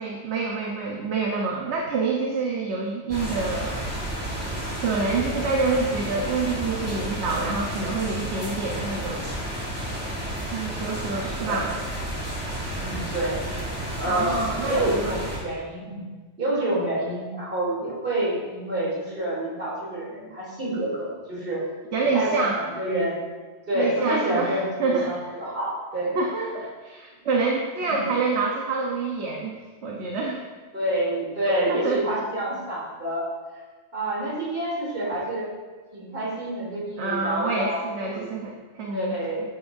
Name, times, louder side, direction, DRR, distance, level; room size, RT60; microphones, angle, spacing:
voice 1, 0.0-3.8 4.8-9.2 10.5-11.7 14.0-15.1 21.9-22.6 23.7-25.1 26.1-29.5 29.8-30.4 31.7-32.0 37.0-39.1, right 4 dB, 65° right, -1 dB, 1.3 m, -27 dB
sound 1, 3.1-15.4, right 1 dB, 10° right, 2.7 m, -31 dB
voice 2, 10.9-11.7 12.7-13.4 14.0-16.0 16.4-21.7 22.1-23.2 23.7-26.2 27.9-28.1 30.7-33.3 33.9-35.5 35.9-37.8 38.1-38.3 38.9-39.4, right 1 dB, 45° right, -6 dB, 3.5 m, -28 dB
10.5 x 10.0 x 2.7 m, 1.3 s
omnidirectional pair, 1.2 m